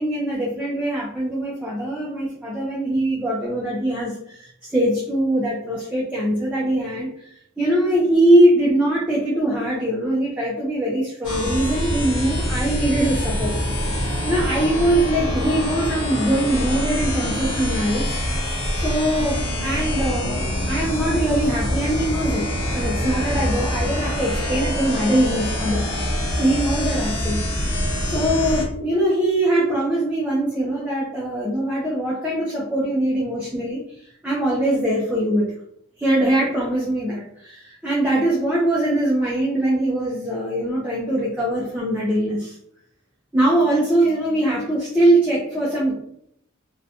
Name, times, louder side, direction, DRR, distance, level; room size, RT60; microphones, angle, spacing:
voice 1, 0.0-7.3 7.6-13.5 13.9-18.2 18.7-22.5 22.7-25.8 26.4-27.4 27.7-35.5 36.0-42.6 43.3-46.0, right 1 dB, 5° right, -6 dB, 0.4 m, -22 dB
sound 1, 11.2-28.6, equal, 55° left, 1.0 m, -25 dB
2.5 x 2.1 x 2.7 m, 0.72 s
head